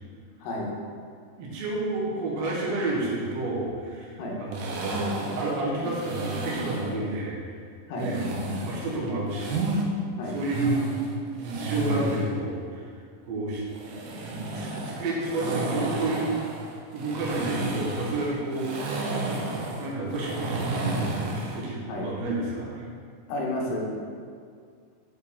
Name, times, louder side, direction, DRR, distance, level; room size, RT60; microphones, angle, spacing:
voice 1, 1.4-4.8 5.4-7.5 7.9-8.2 8.6-9.6 10.3-10.9 11.4-12.9 13.2-13.6 14.5-16.3 16.9-18.7 19.7-21.1 21.5-22.9, right 2 dB, 65° right, -5 dB, 1.6 m, -30 dB
sound 1, 4.5-6.9 8.0-9.8 10.3-12.3 13.7-21.6, right 2 dB, 80° right, 1.9 m, -31 dB
voice 2, 23.3-23.8, left 1 dB, 70° left, -3 dB, 2.3 m, -31 dB
6.3 x 4.7 x 3.6 m, 2.1 s
omnidirectional pair, 4.5 m